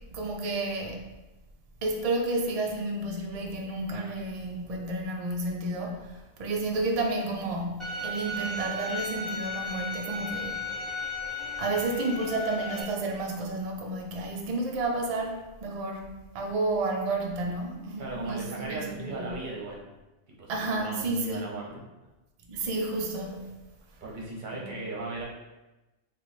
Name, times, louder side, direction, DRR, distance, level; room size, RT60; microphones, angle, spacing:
voice 1, 0.1-1.0 1.8-10.6 11.6-16.1 16.3-19.3 20.5-21.5 22.5-23.5 24.5-24.6, right 2 dB, 80° right, 1 dB, 0.3 m, -31 dB
Bowed string instrument, 7.8-12.8, left 2 dB, ahead, 0.6 m, -35 dB
voice 2, 18.0-19.8 20.4-21.8 24.0-25.3, right 2 dB, 45° right, -3 dB, 0.9 m, -37 dB
3.0 x 2.4 x 4.0 m, 1.1 s
omnidirectional pair, 1.2 m